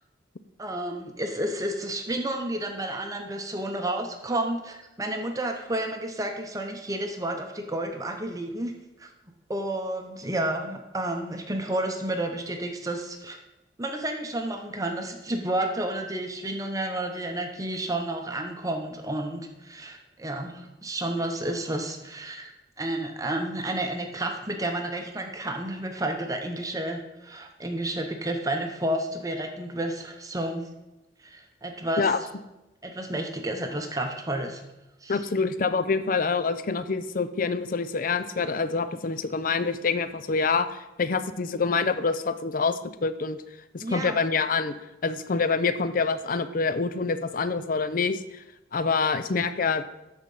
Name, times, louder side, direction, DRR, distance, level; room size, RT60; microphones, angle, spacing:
voice 1, 0.6-8.7 9.0-9.1 9.5-13.4 13.8-30.6 31.2-32.0 32.8-34.6 35.0-35.2 43.8-44.2, right 1 dB, 20° right, 4 dB, 0.7 m, -31 dB
voice 2, 35.1-43.4 43.7-44.8 45.0-48.4 48.7-49.8, left 4 dB, 45° left, 12 dB, 0.5 m, -26 dB
12.5 x 4.4 x 5.4 m, 0.97 s
head